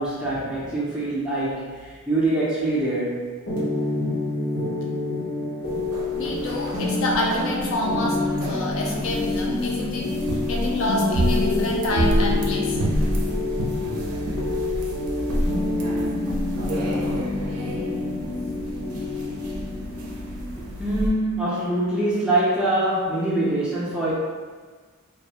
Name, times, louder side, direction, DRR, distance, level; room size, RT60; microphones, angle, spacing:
voice 1, 0.0-3.3 20.6-24.1, right 1 dB, 5° right, -8 dB, 0.4 m, -24 dB
sound 1, 3.5-23.0, left 2 dB, 80° left, 0.8 m, -27 dB
sound 2, 5.6-21.1, equal, 80° right, 0.4 m, -30 dB
voice 2, 6.2-8.2 8.5-10.1 10.5-12.8, left 1 dB, 60° left, -2 dB, 0.4 m, -27 dB
2.2 x 2.0 x 2.8 m, 1.5 s
head